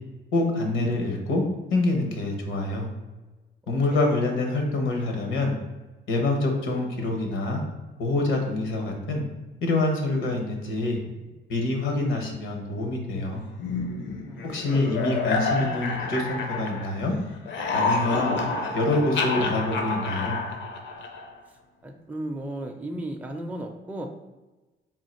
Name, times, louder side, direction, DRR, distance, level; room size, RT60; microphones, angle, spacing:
voice 1, 0.3-1.4 1.7-2.9 3.7-5.5 6.1-7.6 8.0-9.2 9.6-11.0 11.5-13.4 14.4-17.1 17.7-18.4 18.7-20.4, left 2 dB, 85° left, 2 dB, 1.0 m, -26 dB
sound 1, 13.6-17.1 17.4-21.4, left 3 dB, 65° left, 0.6 m, -29 dB
voice 2, 14.3-15.0 15.6-15.9 21.8-24.1, right 1 dB, 10° right, 3 dB, 0.4 m, -35 dB
3.7 x 2.4 x 4.3 m, 1.2 s
cardioid pair, 90°, 20 cm